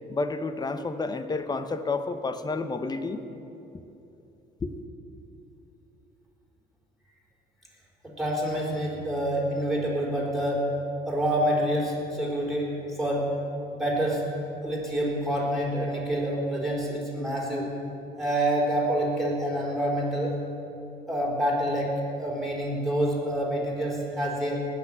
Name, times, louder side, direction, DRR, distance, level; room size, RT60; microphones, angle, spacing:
voice 1, 0.1-3.2 4.6-4.7, left 3 dB, 25° left, 10 dB, 0.9 m, -30 dB
voice 2, 8.0-10.8 11.1-13.4 13.7-14.3 14.6-17.7 18.2-20.4 21.1-24.7, right 1 dB, ahead, -3 dB, 4.2 m, -27 dB
18.5 x 6.3 x 8.9 m, 3.0 s
cardioid pair, 110°, 17 cm